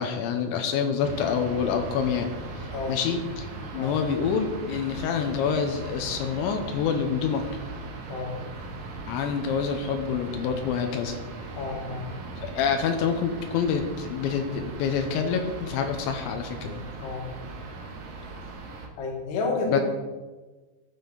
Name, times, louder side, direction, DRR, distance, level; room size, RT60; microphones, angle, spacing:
voice 1, 0.0-2.3 2.6-3.5 3.7-7.4 9.1-11.2 12.4-16.8 19.7-19.8, left 6 dB, 90° left, 5 dB, 3.1 m, -27 dB
sound 1, 1.0-18.9, right 3 dB, 70° right, 1.7 m, -39 dB
voice 2, 11.6-12.1 17.0-17.2 19.0-19.8, left 3 dB, 60° left, 0 dB, 3.0 m, -30 dB
12.5 x 7.2 x 4.0 m, 1.2 s
omnidirectional pair, 5.1 m